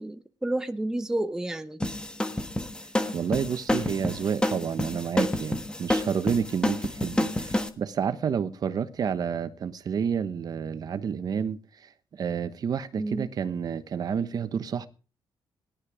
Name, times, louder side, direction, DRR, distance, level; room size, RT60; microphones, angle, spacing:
voice 1, 0.0-1.8 13.0-13.3, right 1 dB, 5° right, 0.7 m, -30 dB
surf-main-loop, 1.8-7.7, left 1 dB, 10° left, 1.3 m, -28 dB
voice 2, 3.1-11.6 12.1-14.9, right 7 dB, 45° right, 1.0 m, -29 dB
18.0 x 11.5 x 5.0 m
wide cardioid pair, 175°, 9 cm